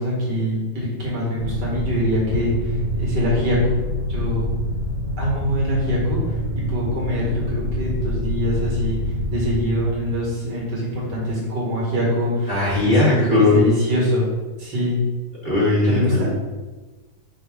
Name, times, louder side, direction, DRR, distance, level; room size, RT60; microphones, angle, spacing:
voice 1, 0.0-2.5 2.9-3.6 4.1-4.5 5.2-6.4 6.7-9.0 9.3-12.5 12.8-14.3 14.6-15.0 15.8-16.3, equal, 85° right, -4 dB, 2.6 m, -24 dB
sound 1, 1.3-11.0, equal, 60° left, 2.1 m, -26 dB
voice 2, 12.5-13.6 15.4-16.2, left 2 dB, 30° left, -8 dB, 2.4 m, -18 dB
5.6 x 5.1 x 3.8 m, 1.2 s
omnidirectional pair, 1.8 m